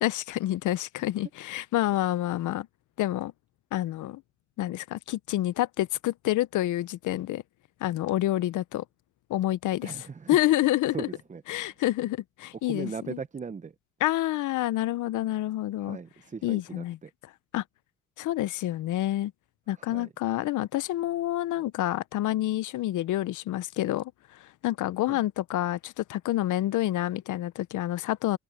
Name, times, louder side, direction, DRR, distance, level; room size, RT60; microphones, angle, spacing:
voice 1, 0.0-2.7 3.0-3.3 3.7-4.2 4.6-7.4 7.8-8.8 9.3-11.1 11.5-13.2 14.0-16.0 16.4-17.0 17.5-17.6 18.2-19.3 19.7-24.1 24.4-28.4, left 15 dB, 80° left, 0.8 m, -28 dB
voice 2, 9.8-10.4 10.9-11.7 12.7-13.7 15.8-17.1 19.8-20.1 25.1-25.2, right 5 dB, 25° right, 0.7 m, -39 dB
cardioid pair, 90°, 30 cm